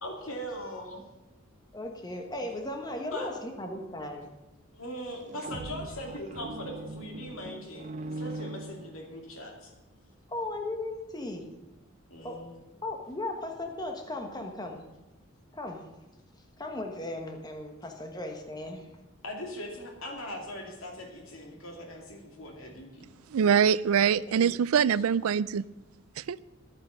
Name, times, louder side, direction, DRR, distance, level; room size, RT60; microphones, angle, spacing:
voice 1, 0.0-1.0 3.1-3.3 4.7-9.7 12.1-12.6 19.2-23.0 24.9-25.0, equal, 70° left, 2.5 m, -40 dB
voice 2, 1.7-4.3 10.3-11.5 12.2-12.4 12.8-14.8 15.5-15.9 16.6-18.9 24.3-24.6, left 2 dB, 20° left, 1.3 m, -37 dB
sound 1, 5.2-9.4, right 2 dB, 35° right, 0.5 m, -40 dB
voice 3, 23.3-25.6 26.2-26.4, right 7 dB, 85° right, 0.4 m, -24 dB
11.5 x 8.7 x 6.4 m
head